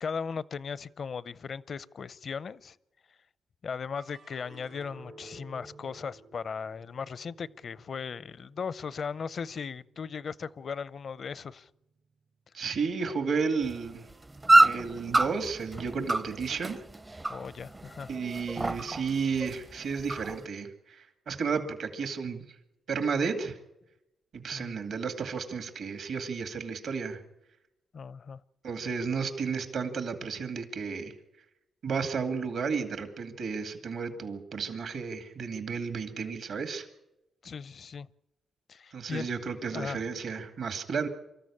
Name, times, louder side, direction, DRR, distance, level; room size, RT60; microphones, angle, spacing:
voice 1, 0.0-2.7 3.6-11.7 17.3-18.1 24.5-24.8 27.9-28.4 37.4-38.1 38.7-39.3 39.7-40.0, left 6 dB, 60° left, 20 dB, 0.7 m, -37 dB
sound 1, 4.0-10.4 10.8-11.5, right 2 dB, 90° right, 5.1 m, -54 dB
voice 2, 12.5-14.1 14.5-16.8 18.1-22.4 22.9-23.6 24.3-27.2 28.6-31.2 31.8-36.9 38.9-41.1, right 5 dB, 70° right, 7 dB, 2.4 m, -32 dB
sound 2, 13.6-20.5, right 2 dB, 25° right, 0.7 m, -28 dB
25.0 x 14.0 x 8.7 m, 0.91 s
supercardioid pair, 45°, 0 cm